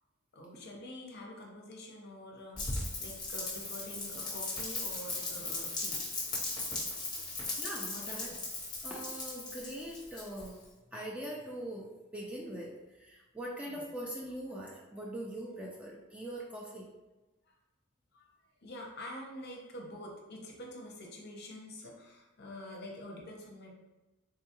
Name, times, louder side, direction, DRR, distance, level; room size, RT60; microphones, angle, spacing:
voice 1, 0.3-6.0 7.1-7.2 7.9-8.4 13.7-13.8 18.1-18.3 18.6-23.7, left 1 dB, 50° left, 0 dB, 0.6 m, -46 dB
Rain, 2.6-10.6, left 2 dB, 20° left, 0.9 m, -38 dB
voice 2, 7.6-8.3 8.8-10.6 10.9-16.9, right 1 dB, 5° right, -3 dB, 0.3 m, -42 dB
3.6 x 2.3 x 2.8 m, 1.1 s
head